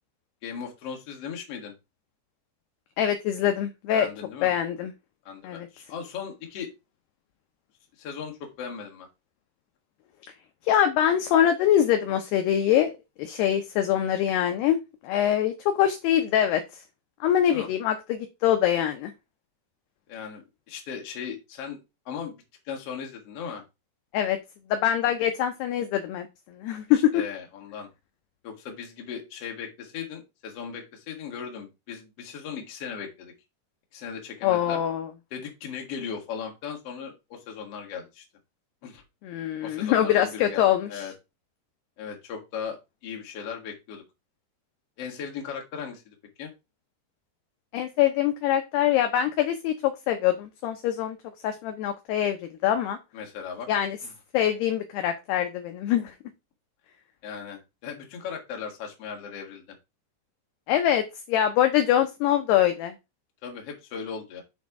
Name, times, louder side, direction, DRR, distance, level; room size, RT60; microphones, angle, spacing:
voice 1, 0.4-1.7 3.9-4.5 5.3-6.7 8.0-9.1 17.5-17.7 20.1-21.8 22.1-22.3 22.7-23.6 26.9-27.9 28.4-33.3 33.9-34.8 35.3-38.2 38.8-39.0 39.6-41.1 42.0-42.8 43.0-44.0 45.0-46.5 53.1-53.7 57.2-59.8 63.4-64.4, left 7 dB, 50° left, 1 dB, 1.8 m, -37 dB
voice 2, 3.0-4.1 4.4-4.9 5.4-5.7 10.6-12.9 13.2-14.8 15.0-16.6 17.2-19.1 24.1-24.4 24.7-26.3 26.6-27.2 34.4-35.1 39.2-41.0 47.7-51.2 51.4-52.4 52.6-53.0 53.7-54.0 54.3-56.1 60.7-62.9, left 10 dB, 80° left, 6 dB, 2.4 m, -24 dB
7.0 x 4.3 x 4.7 m, 0.24 s
omnidirectional pair, 5.4 m